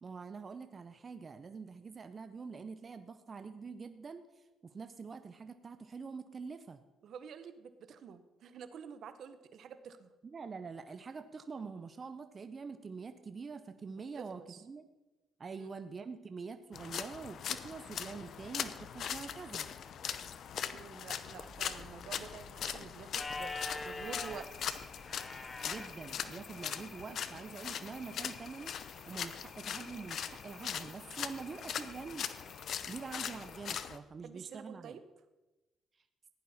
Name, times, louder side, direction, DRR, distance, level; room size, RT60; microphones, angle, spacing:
voice 1, 0.0-6.8 10.2-14.8 15.4-19.7 25.6-28.7 29.1-32.3 32.9-35.0, right 5 dB, 40° right, 10 dB, 0.7 m, -45 dB
voice 2, 7.0-10.1 14.2-14.6 15.5-15.7 20.7-24.8 34.2-35.0, right 7 dB, 70° right, 11 dB, 0.9 m, -49 dB
sound 1, 16.7-34.0, left 8 dB, 65° left, 0.7 m, -41 dB
Mechanical fan, 21.3-26.7, equal, ahead, 5.2 m, -59 dB
sound 2, 23.2-33.6, left 3 dB, 20° left, 1.0 m, -48 dB
15.5 x 10.5 x 4.2 m, 1.1 s
cardioid pair, 90°, 0 cm